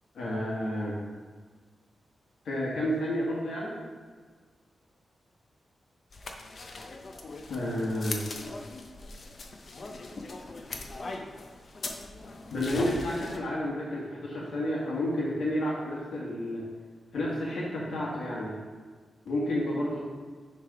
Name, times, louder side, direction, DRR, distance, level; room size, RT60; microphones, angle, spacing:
voice 1, 0.1-1.0 2.4-3.8 7.5-8.2 12.5-16.6 17.1-18.5 19.2-20.0, left 1 dB, 80° left, -5 dB, 1.2 m, -30 dB
sound 1, 6.1-13.4, left 3 dB, 45° left, 0.5 m, -40 dB
6.4 x 3.3 x 4.7 m, 1.5 s
wide cardioid pair, 140°, 0 cm